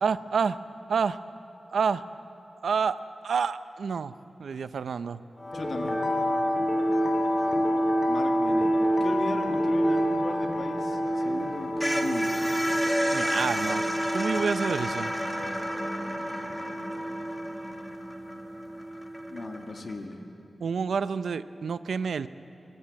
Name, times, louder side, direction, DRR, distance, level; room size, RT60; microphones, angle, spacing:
voice 1, 0.0-0.6 0.9-1.2 1.7-2.0 2.6-3.0 3.2-4.1 4.4-5.2 13.1-13.8 14.1-15.1 20.6-22.3, right 6 dB, 90° right, 13 dB, 0.6 m, -28 dB
sound 1, 5.4-19.5, equal, 30° left, 3.0 m, -28 dB
voice 2, 5.5-6.3 8.0-8.7 9.0-12.7 19.3-20.3, left 2 dB, 55° left, 3 dB, 2.1 m, -37 dB
sound 2, 11.1-19.9, equal, 5° left, 1.7 m, -32 dB
23.5 x 20.0 x 8.6 m, 2.9 s
wide cardioid pair, 130°, 0 cm